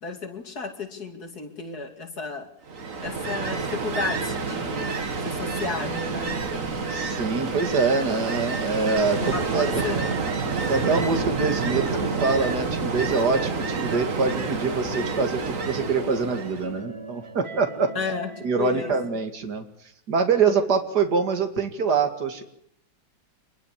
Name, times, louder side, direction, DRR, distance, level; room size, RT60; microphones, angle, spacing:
voice 1, 0.0-2.5 3.0-4.9 5.2-6.4 9.2-10.2 17.9-18.3 18.6-18.9, left 4 dB, 60° left, 4 dB, 3.2 m, -33 dB
Ocean, 2.7-16.8, right 4 dB, 50° right, 2.0 m, -29 dB
sound 1, 5.8-19.1, right 3 dB, 25° right, 0.7 m, -39 dB
voice 2, 6.9-9.9 10.7-17.9 18.4-19.6 20.1-22.4, right 4 dB, 65° right, 6 dB, 2.7 m, -25 dB
25.5 x 21.0 x 7.4 m, 0.70 s
omnidirectional pair, 1.9 m